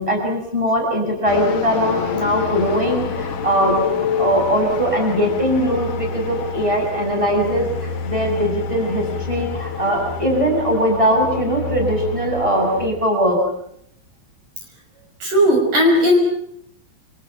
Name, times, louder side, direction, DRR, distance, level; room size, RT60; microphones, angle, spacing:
voice 1, 0.0-13.4, equal, 5° right, 2 dB, 7.3 m, -20 dB
sound 1, 1.3-12.9, left 6 dB, 55° left, 3.1 m, -27 dB
voice 2, 15.2-16.2, equal, 50° right, 2 dB, 7.1 m, -15 dB
28.5 x 27.5 x 6.1 m, 0.71 s
omnidirectional pair, 5.0 m